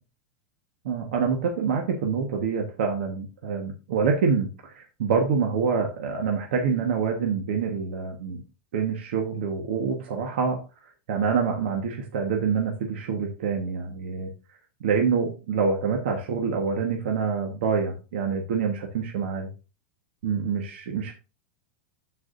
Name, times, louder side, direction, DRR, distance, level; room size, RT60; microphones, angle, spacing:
voice 1, 0.8-8.4 8.7-10.6 11.1-14.3 14.8-19.5 20.2-21.1, right 5 dB, 65° right, 1 dB, 1.4 m, -26 dB
13.0 x 4.8 x 2.6 m, 0.33 s
supercardioid pair, 175°, 6 cm